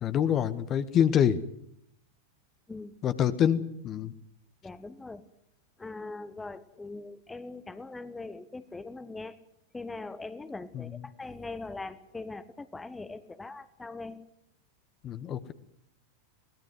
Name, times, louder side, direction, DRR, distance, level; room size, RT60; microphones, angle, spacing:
voice 1, 0.0-1.4 3.0-4.1 10.7-10.9 15.0-15.5, left 9 dB, 30° left, 12 dB, 1.4 m, -26 dB
voice 2, 4.6-5.2 5.8-9.4 9.7-14.2, left 3 dB, 10° left, 13 dB, 1.4 m, -41 dB
24.0 x 19.0 x 7.9 m, 0.73 s
figure-of-eight pair, 90°, 0 cm